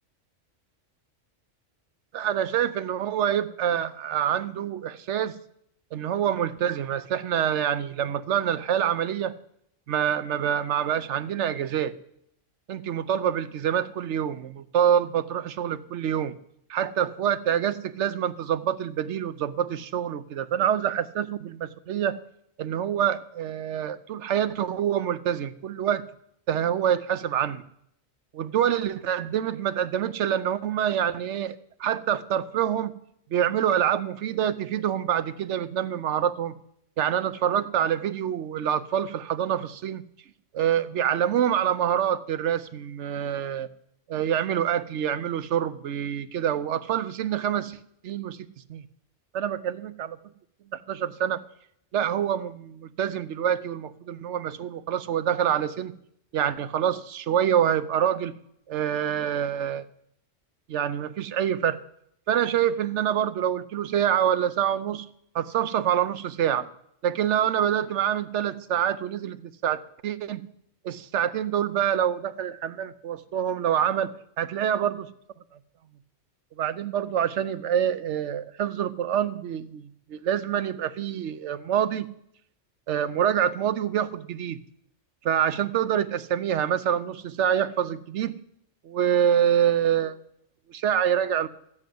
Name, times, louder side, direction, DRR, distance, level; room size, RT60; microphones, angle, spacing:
voice 1, 2.1-5.3 5.9-9.3 9.9-11.9 12.7-16.4 16.7-22.2 22.6-26.0 26.5-27.6 28.3-32.9 33.3-36.5 37.0-40.0 40.5-43.7 44.1-47.8 48.0-48.4 48.7-48.9 49.3-50.2 50.7-51.4 51.9-55.9 56.3-58.4 58.7-59.9 60.7-61.8 62.3-65.1 65.3-66.7 67.0-70.4 70.8-74.1 74.4-75.1 76.6-82.1 82.9-84.6 85.2-88.3 88.8-90.2 90.7-91.5, right 9 dB, 70° right, 12 dB, 1.0 m, -26 dB
13.5 x 7.8 x 9.2 m, 0.73 s
omnidirectional pair, 1.3 m